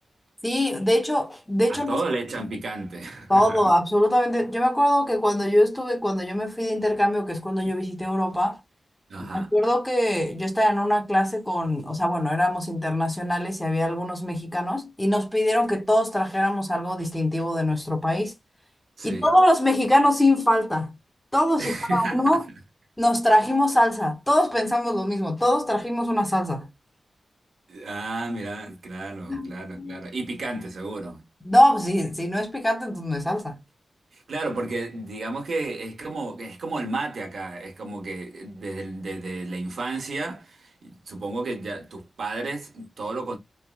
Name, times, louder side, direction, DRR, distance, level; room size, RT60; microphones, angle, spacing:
voice 1, 0.4-2.0 3.3-8.6 9.3-18.3 19.0-20.9 21.3-22.4 23.0-26.7 29.3-30.0 31.4-33.6, left 1 dB, 5° left, 0.7 m, -22 dB
voice 2, 1.7-3.6 9.1-9.5 19.0-19.3 21.6-22.4 27.7-31.2 34.1-43.4, right 2 dB, 70° right, 1.2 m, -32 dB
4.5 x 2.0 x 2.2 m
wide cardioid pair, 160°, 0 cm